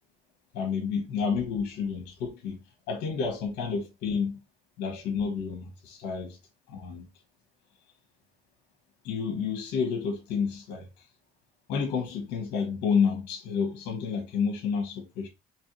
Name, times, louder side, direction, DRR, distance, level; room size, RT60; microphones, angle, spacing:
voice 1, 0.5-2.6 2.9-4.4 4.8-6.4 6.7-7.0 9.0-10.9 11.7-15.3, left 6 dB, 90° left, 1.4 m, -30 dB
4.5 x 3.3 x 3.1 m
cardioid pair, 110°, 17 cm